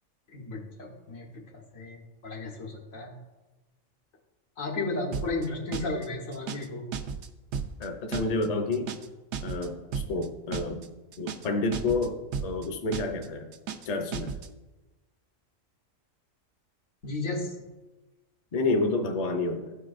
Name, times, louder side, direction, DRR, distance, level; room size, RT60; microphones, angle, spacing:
voice 1, 0.3-1.4 1.7-3.1 4.6-6.9 17.0-17.5, left 2 dB, 85° left, -1 dB, 1.6 m, -34 dB
sound 1, 5.1-5.5 5.7-6.1 6.3-6.7 6.9-7.3 7.5-7.9 8.1-8.5 8.7-9.1 9.3-9.7 9.9-10.3 10.5-10.9 11.1-11.5 11.7-12.1 12.3-12.7 12.9-13.3 13.5-13.9 14.1-14.5, right 7 dB, 70° right, 0.8 m, -34 dB
voice 2, 7.8-8.9 9.4-10.9 11.2-13.5 13.8-14.3 18.5-19.7, left 3 dB, 40° left, 4 dB, 0.6 m, -29 dB
13.5 x 4.6 x 2.5 m, 1.1 s
omnidirectional pair, 1.4 m